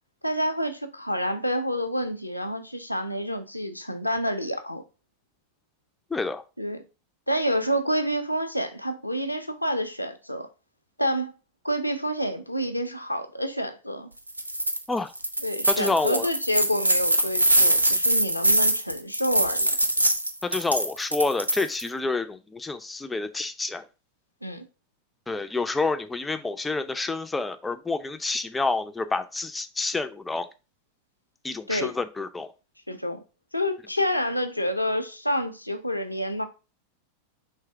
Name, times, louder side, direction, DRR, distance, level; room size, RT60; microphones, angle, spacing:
voice 1, 0.2-4.8 6.6-6.8 7.3-10.5 11.0-11.3 11.6-14.1 15.4-19.7 24.4-24.6 31.7-31.9 32.9-33.2 33.5-36.4, equal, 90° left, 0.5 m, -28 dB
voice 2, 6.1-6.4 14.9-15.1 15.7-16.3 20.4-23.9 25.3-30.5 31.4-32.5, left 3 dB, 10° left, 0.4 m, -28 dB
sound 1, 14.3-14.8 15.2-21.9, right 1 dB, 85° right, 0.4 m, -23 dB
3.3 x 3.1 x 4.4 m
figure-of-eight pair, 90°, 0 cm